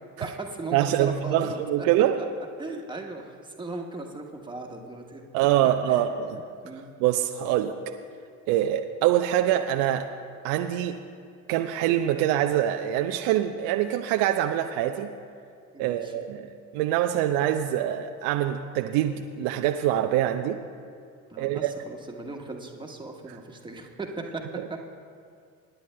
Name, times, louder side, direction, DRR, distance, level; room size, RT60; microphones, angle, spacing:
voice 1, 0.2-1.6 2.6-5.2 5.9-6.0 6.6-6.9 15.7-16.2 21.3-24.4 24.7-24.8, right 2 dB, 10° right, 1 dB, 1.5 m, -37 dB
voice 2, 0.7-2.2 5.3-6.4 7.0-7.9 8.5-10.1 10.4-11.0 11.5-15.1 15.8-20.6 21.4-21.7 24.6-24.7, right 12 dB, 55° right, 6 dB, 0.6 m, -24 dB
26.5 x 10.5 x 2.2 m, 2.2 s
figure-of-eight pair, 55°, 42 cm